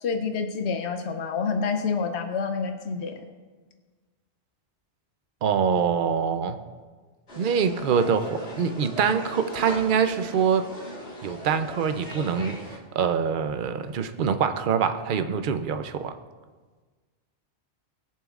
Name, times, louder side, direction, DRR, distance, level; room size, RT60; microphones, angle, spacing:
voice 1, 0.0-3.2, left 5 dB, 85° left, 6 dB, 1.0 m, -28 dB
voice 2, 5.4-6.6 7.4-10.6 11.2-12.6 12.9-16.1, right 6 dB, 55° right, 9 dB, 0.7 m, -24 dB
sound 1, 7.3-12.8, equal, 60° left, 2.0 m, -39 dB
21.0 x 7.2 x 2.4 m, 1.4 s
omnidirectional pair, 1.1 m